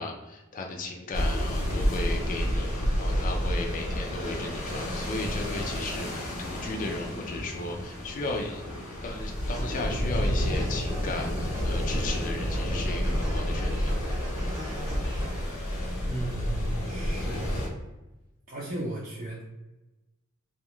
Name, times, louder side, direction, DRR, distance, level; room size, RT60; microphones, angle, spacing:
voice 1, 0.0-8.6 9.0-14.0, left 2 dB, 40° left, 1 dB, 0.4 m, -36 dB
sound 1, 1.1-17.7, equal, 85° left, 0.9 m, -30 dB
sound 2, 9.5-15.4, right 1 dB, 15° right, 0.9 m, -43 dB
voice 2, 16.0-17.7 18.5-19.5, right 1 dB, 40° right, -6 dB, 0.5 m, -36 dB
2.8 x 2.2 x 3.0 m, 1.0 s
head